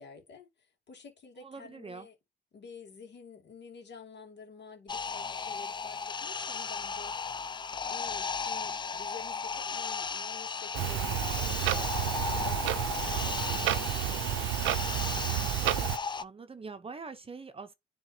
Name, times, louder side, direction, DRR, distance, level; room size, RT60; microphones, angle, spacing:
voice 1, 0.0-2.2 2.5-7.3 7.9-14.7, left 5 dB, 60° left, 2.5 m, -50 dB
voice 2, 1.4-2.1 16.2-17.7, right 4 dB, 30° right, 0.7 m, -44 dB
sound 1, 4.9-16.2, left 5 dB, 25° left, 0.3 m, -35 dB
Clock, 10.7-16.0, right 14 dB, 80° right, 0.5 m, -31 dB
10.0 x 3.6 x 2.7 m
cardioid pair, 90°, 20 cm